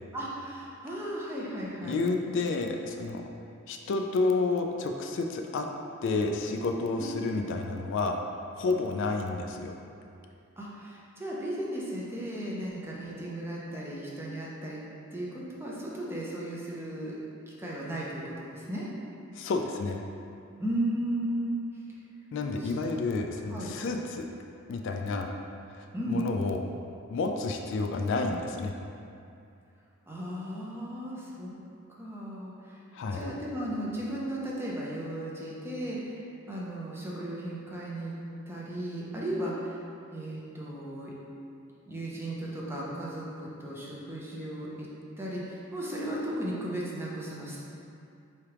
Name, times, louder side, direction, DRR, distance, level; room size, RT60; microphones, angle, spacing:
voice 1, 0.1-2.0 7.0-7.1 10.6-14.8 15.1-17.2 17.6-18.9 20.6-21.6 22.6-22.7 23.5-23.7 25.9-26.2 30.1-31.6 31.9-32.7 33.1-38.1 38.5-39.8 40.1-41.2 41.9-44.9 45.2-47.6, right 1 dB, 10° right, -5 dB, 0.6 m, -35 dB
voice 2, 1.8-3.2 3.7-5.7 6.0-8.2 8.6-9.7 19.3-20.0 22.3-24.3 24.7-25.3 25.7-26.6 27.1-28.7 32.9-33.2, left 3 dB, 60° left, 3 dB, 0.3 m, -30 dB
4.7 x 3.3 x 2.9 m, 2.5 s
head